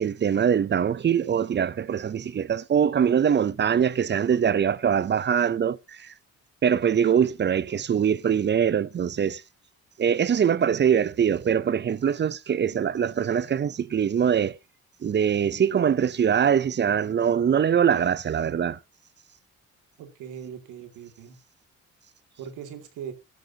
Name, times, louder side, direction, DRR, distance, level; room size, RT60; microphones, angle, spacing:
voice 1, 0.0-6.1 6.6-9.4 10.0-14.6 15.0-18.8, right 8 dB, 35° right, 0.6 m, -23 dB
voice 2, 20.0-21.4 22.4-23.1, right 8 dB, 90° right, 2.4 m, -40 dB
13.5 x 12.0 x 2.8 m
cardioid pair, 90°, 30 cm